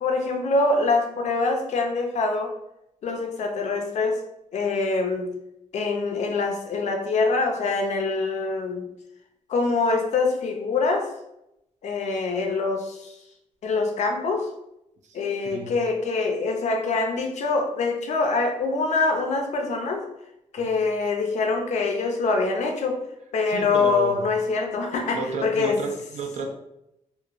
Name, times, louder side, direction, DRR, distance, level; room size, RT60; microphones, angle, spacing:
voice 1, 0.0-2.5 3.0-4.2 4.5-5.3 5.7-8.8 9.5-11.1 11.8-13.1 13.6-14.5 15.1-20.0 20.5-23.0 23.3-25.8, left 3 dB, 65° left, 3 dB, 0.5 m, -24 dB
voice 2, 15.1-15.7 20.6-20.7 23.5-24.2 25.1-26.5, right 3 dB, 70° right, 3 dB, 0.4 m, -32 dB
2.8 x 2.2 x 2.5 m, 0.84 s
wide cardioid pair, 145°, 13 cm